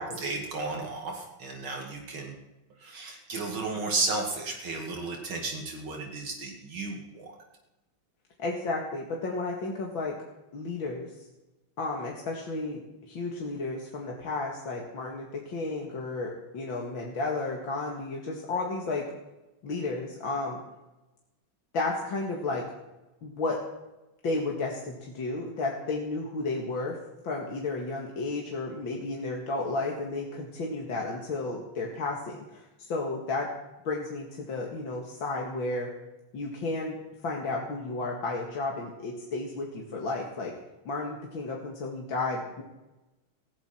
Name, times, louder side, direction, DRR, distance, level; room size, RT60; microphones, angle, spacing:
voice 1, 0.2-2.4 2.8-7.3, right 3 dB, 75° right, 1 dB, 3.1 m, -33 dB
voice 2, 8.4-10.2 10.5-11.1 11.8-19.1 19.6-20.6 21.7-22.7 23.2-23.6 24.2-27.0 27.2-33.5 33.8-35.9 36.3-37.0 37.2-40.5 40.9-42.6, left 3 dB, 70° left, -1 dB, 2.7 m, -32 dB
19.0 x 16.0 x 4.5 m, 1.0 s
omnidirectional pair, 2.3 m